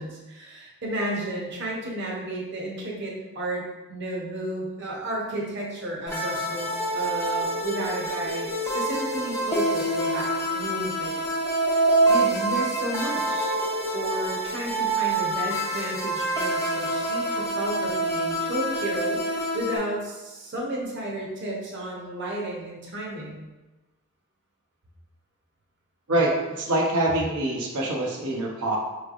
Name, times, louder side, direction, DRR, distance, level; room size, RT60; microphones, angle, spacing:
voice 1, 0.0-3.6 3.9-11.2 11.6-13.5 13.9-23.5, right 1 dB, 50° right, -3 dB, 0.8 m, -32 dB
sound 1, 6.1-19.8, right 2 dB, 10° left, 0.4 m, -26 dB
voice 2, 26.1-28.8, right 1 dB, 85° right, -2 dB, 0.8 m, -25 dB
4.7 x 3.2 x 2.4 m, 1.1 s
head